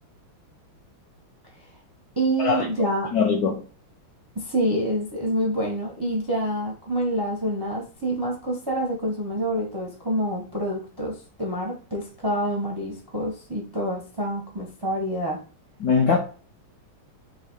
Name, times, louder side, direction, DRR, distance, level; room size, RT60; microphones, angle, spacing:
voice 1, 2.2-3.1 4.3-15.4, right 1 dB, 35° right, 0.3 m, -27 dB
voice 2, 3.1-3.6 15.8-16.2, left 6 dB, 75° left, 0.9 m, -21 dB
4.0 x 2.7 x 4.5 m
omnidirectional pair, 2.3 m